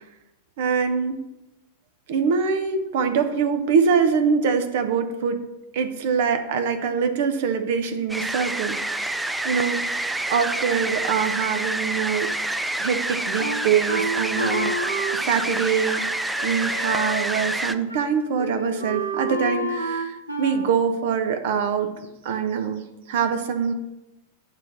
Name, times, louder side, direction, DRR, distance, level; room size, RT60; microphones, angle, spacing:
voice 1, 0.6-1.2 2.1-5.4 5.7-8.8 9.4-12.3 12.8-14.7 15.1-16.1 16.4-23.7, right 6 dB, 55° right, 8 dB, 0.7 m, -24 dB
sound 1, 8.1-17.7, right 1 dB, 5° right, 0.3 m, -27 dB
Wind instrument woodwind instrument, 13.4-17.6 17.9-18.1 18.4-20.7, right 1 dB, 85° right, 1.0 m, -30 dB
9.2 x 3.3 x 6.5 m, 0.95 s
figure-of-eight pair, 90°, 0 cm